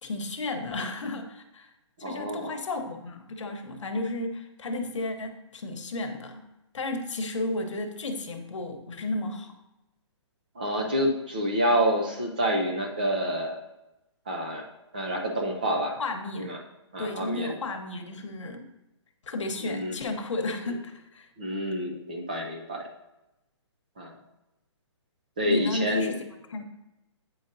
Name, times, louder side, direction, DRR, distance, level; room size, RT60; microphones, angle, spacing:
voice 1, 0.0-1.7 2.0-6.5 6.7-9.6 16.0-16.6 17.0-18.7 19.3-21.3 25.5-26.6, left 2 dB, 85° left, 5 dB, 1.0 m, -33 dB
voice 2, 2.0-2.5 10.6-13.5 14.3-14.6 14.9-16.0 16.4-16.6 16.9-17.6 19.6-20.0 21.4-22.9 24.0-24.1 25.4-26.1, equal, 20° right, 1 dB, 0.4 m, -28 dB
8.2 x 5.1 x 2.7 m, 0.96 s
hypercardioid pair, 180°, 15 cm